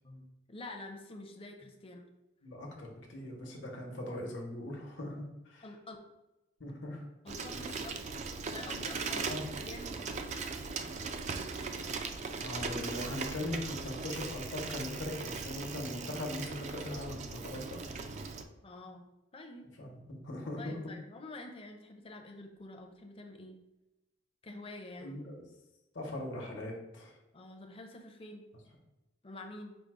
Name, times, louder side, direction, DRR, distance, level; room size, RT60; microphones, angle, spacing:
voice 1, 0.0-2.1 5.6-6.0 7.2-8.1 8.5-10.5 18.6-19.7 20.6-23.6 24.4-25.2 27.3-28.5 29.2-29.8, left 2 dB, 30° left, 4 dB, 0.6 m, -48 dB
voice 2, 2.4-5.6 6.6-7.0 9.3-9.4 12.4-17.8 19.8-20.6 25.0-25.4 25.9-27.2, left 1 dB, 70° left, 0 dB, 1.0 m, -40 dB
Bicycle, 7.3-18.4, right 4 dB, 40° right, 0.3 m, -39 dB
5.2 x 2.0 x 4.7 m, 0.96 s
head